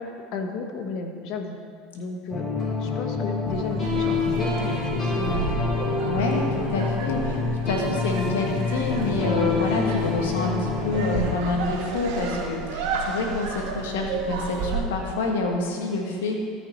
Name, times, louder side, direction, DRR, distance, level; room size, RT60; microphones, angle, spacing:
voice 1, 0.0-1.6 1.9-2.4 2.8-5.6, left 3 dB, 60° left, 5 dB, 1.1 m, -33 dB
sound 1, 2.3-11.3, left 4 dB, 30° left, 2.6 m, -27 dB
sound 2, 3.4-14.8, right 5 dB, 70° right, 1.9 m, -32 dB
voice 2, 6.0-16.5, left 3 dB, 90° left, 1 dB, 1.5 m, -27 dB
13.5 x 5.8 x 4.4 m, 2.1 s
supercardioid pair, 100°, 0 cm